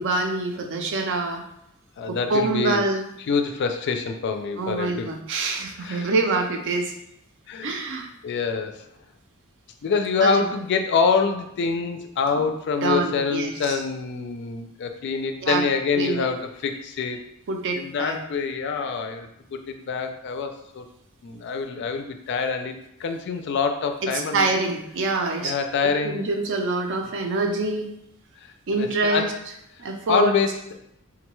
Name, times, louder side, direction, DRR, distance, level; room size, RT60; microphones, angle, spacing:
voice 1, 0.0-1.4 2.1-3.0 4.6-6.9 7.6-8.1 10.2-10.5 12.3-12.4 12.8-13.8 15.4-15.6 15.9-16.3 17.5-18.2 24.0-25.5 25.8-27.9 28.7-29.3 29.8-30.3, right 3 dB, 60° right, 4 dB, 0.5 m, -25 dB
voice 2, 2.0-2.8 3.3-5.1 5.8-6.1 7.5-7.8 8.2-8.8 9.8-17.2 17.8-20.9 21.2-24.5 25.4-26.2 28.7-29.3 30.1-30.7, left 5 dB, 55° left, 6 dB, 0.3 m, -25 dB
3.7 x 2.2 x 3.0 m, 0.77 s
head